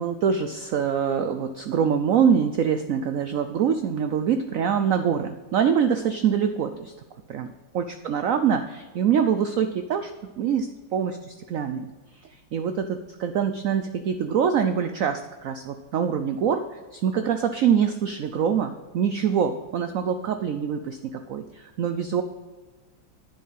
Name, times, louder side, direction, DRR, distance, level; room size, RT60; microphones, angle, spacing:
voice 1, 0.0-6.9 7.3-7.5 7.7-10.1 10.4-11.9 12.1-22.2, right 7 dB, 85° right, 8 dB, 0.7 m, -24 dB
10.0 x 7.3 x 5.7 m, 1.3 s
omnidirectional pair, 2.1 m